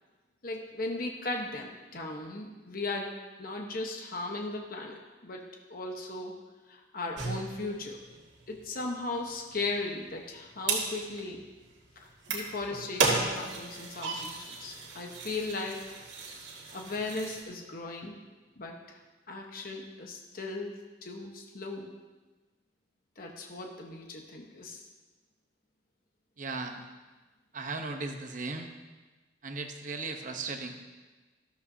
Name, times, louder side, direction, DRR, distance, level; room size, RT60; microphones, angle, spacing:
voice 1, 0.4-3.1 3.4-6.3 6.7-8.0 8.5-11.4 12.0-15.8 16.7-18.1 18.6-19.0 19.3-21.9 23.2-24.8, left 2 dB, 50° left, 1 dB, 1.1 m, -37 dB
sound 1, 7.2-17.4, right 3 dB, 75° right, 2.2 m, -35 dB
voice 2, 26.4-26.9 27.5-28.7 29.4-30.9, right 3 dB, 45° right, 5 dB, 0.9 m, -37 dB
13.5 x 13.0 x 2.7 m, 1.3 s
head